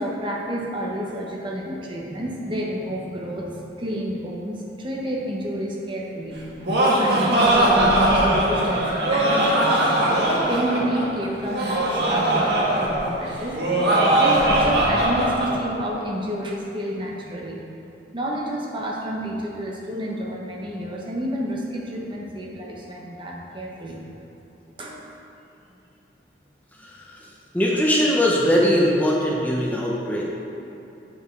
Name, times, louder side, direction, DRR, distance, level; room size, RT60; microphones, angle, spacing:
voice 1, 0.0-6.4 6.9-9.9 10.5-13.5 14.1-17.6 18.1-24.1 24.8-25.0, right 1 dB, 30° right, -2 dB, 1.0 m, -30 dB
Laughter, 6.3-15.5, right 1 dB, 65° right, 1.5 m, -20 dB
voice 2, 27.5-30.2, equal, 10° left, -4 dB, 0.8 m, -20 dB
8.6 x 5.6 x 4.6 m, 3.0 s
head